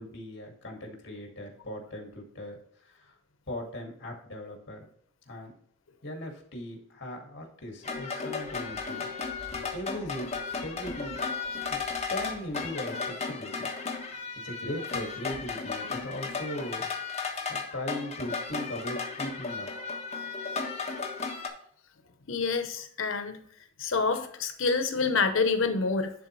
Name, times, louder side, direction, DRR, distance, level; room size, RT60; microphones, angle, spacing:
voice 1, 0.0-2.6 2.9-3.1 3.5-4.9 5.3-5.5 6.0-9.1 9.7-11.2 11.7-11.8 12.1-13.7 14.4-16.9 17.5-19.7, left 1 dB, 60° left, 2 dB, 2.2 m, -38 dB
sound 1, 7.8-21.5, left 4 dB, 35° left, 1.2 m, -35 dB
voice 2, 22.3-23.4 23.8-26.1, left 4 dB, 75° left, 8 dB, 0.9 m, -27 dB
11.0 x 4.1 x 3.2 m, 0.63 s
head